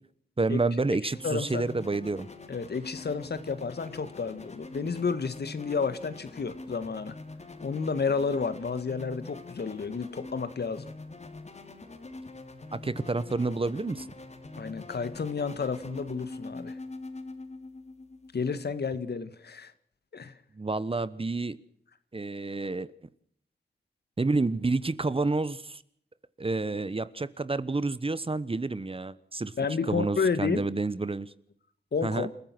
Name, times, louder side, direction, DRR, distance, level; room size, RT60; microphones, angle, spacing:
voice 1, 0.4-2.3 12.7-14.1 20.5-21.6 22.1-22.9 24.2-25.8 26.4-29.5 29.8-31.3 32.0-32.3, right 3 dB, 30° right, 16 dB, 1.2 m, -29 dB
sound 1, 1.0-18.8, left 3 dB, 40° left, 3.5 m, -44 dB
voice 2, 1.2-1.6 2.5-7.1 7.6-10.9 14.6-16.7 18.3-19.7 20.1-20.3 29.6-30.6 31.9-32.3, left 5 dB, 65° left, 12 dB, 1.8 m, -31 dB
29.5 x 14.5 x 6.1 m, 0.66 s
wide cardioid pair, 75°, 18 cm